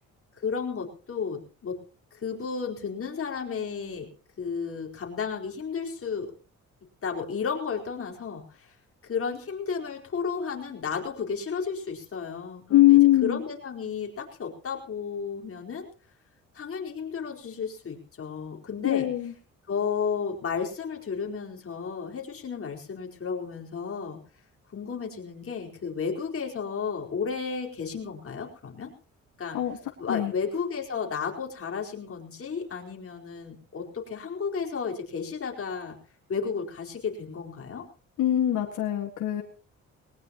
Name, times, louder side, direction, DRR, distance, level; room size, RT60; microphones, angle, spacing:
voice 1, 0.4-1.8 2.1-4.1 4.4-6.3 7.0-8.7 9.0-15.9 16.5-19.1 19.7-24.2 24.7-28.9 29.4-29.6 30.0-36.0 36.3-37.8, left 6 dB, 45° left, 0 dB, 4.6 m, -33 dB
voice 2, 12.7-13.4 18.8-19.3 29.5-29.8 30.1-30.3 38.2-39.4, left 14 dB, 75° left, 2 dB, 2.0 m, -21 dB
20.5 x 19.0 x 3.0 m, 0.36 s
cardioid pair, 90°, 30 cm